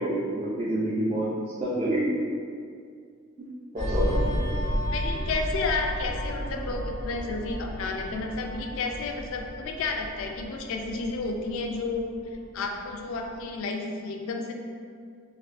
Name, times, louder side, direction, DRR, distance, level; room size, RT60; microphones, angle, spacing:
voice 1, 0.0-1.3 1.6-2.2 3.7-4.3, right 1 dB, 30° right, -7 dB, 0.3 m, -27 dB
sound 1, 3.8-12.8 13.1-13.4, equal, 75° right, 1.2 m, -32 dB
voice 2, 4.9-12.1 12.5-14.5, left 3 dB, 65° left, 2 dB, 0.3 m, -31 dB
3.3 x 2.6 x 2.4 m, 2.2 s
head